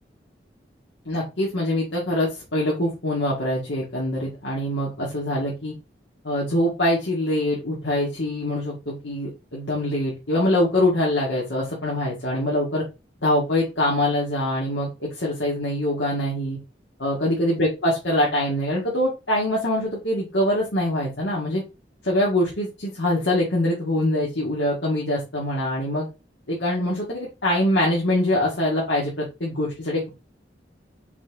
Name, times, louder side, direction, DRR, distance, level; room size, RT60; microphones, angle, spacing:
voice 1, 1.1-5.7 6.2-12.8 13.2-16.6 17.0-21.6 22.0-26.1 26.5-30.1, left 1 dB, 90° left, -5 dB, 2.2 m, -24 dB
6.0 x 4.4 x 3.7 m, 0.27 s
head